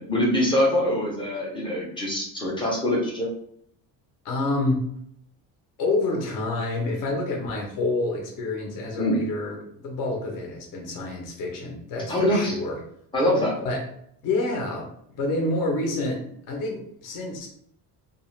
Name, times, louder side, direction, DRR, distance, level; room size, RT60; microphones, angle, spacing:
voice 1, 0.0-3.3 9.0-9.2 12.1-12.6 13.1-13.6, left 1 dB, 10° left, -3 dB, 0.5 m, -24 dB
voice 2, 4.2-4.8 5.8-12.8 13.6-13.8 14.2-17.5, left 2 dB, 50° left, 0 dB, 0.7 m, -28 dB
2.4 x 2.3 x 3.0 m, 0.67 s
cardioid pair, 175°, 41 cm